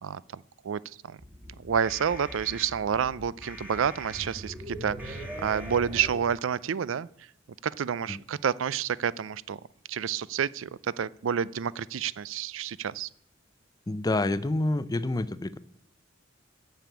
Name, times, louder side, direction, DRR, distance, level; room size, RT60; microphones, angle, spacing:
voice 1, 0.0-0.8 1.1-1.2 1.6-7.1 7.6-9.6 9.9-13.1, right 7 dB, 75° right, 20 dB, 0.4 m, -29 dB
sound 1, 1.2-6.2, equal, 10° right, 1.5 m, -41 dB
voice 2, 13.9-15.6, left 2 dB, 20° left, 15 dB, 0.5 m, -28 dB
9.2 x 6.9 x 8.3 m, 0.68 s
head